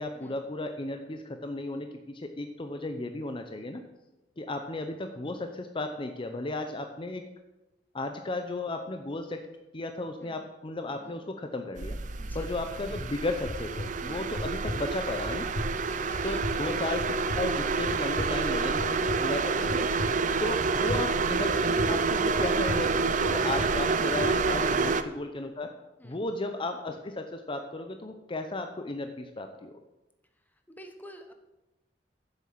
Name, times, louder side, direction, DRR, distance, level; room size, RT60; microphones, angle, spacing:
voice 1, 0.0-3.8 4.4-7.2 7.9-9.4 9.7-12.0 12.3-15.5 16.2-17.0 17.3-19.9 20.4-25.7 26.0-29.8, left 2 dB, 30° left, 6 dB, 0.7 m, -34 dB
sound 1, 11.8-25.0, right 4 dB, 45° right, 0.5 m, -28 dB
voice 2, 12.2-12.5 14.0-14.3 15.9-16.4 18.6-18.8 26.0-26.2 30.5-31.3, equal, 10° left, 6 dB, 1.0 m, -49 dB
sound 2, 12.9-24.4, left 1 dB, 85° left, 1.2 m, -39 dB
7.6 x 7.5 x 7.2 m, 1.0 s
head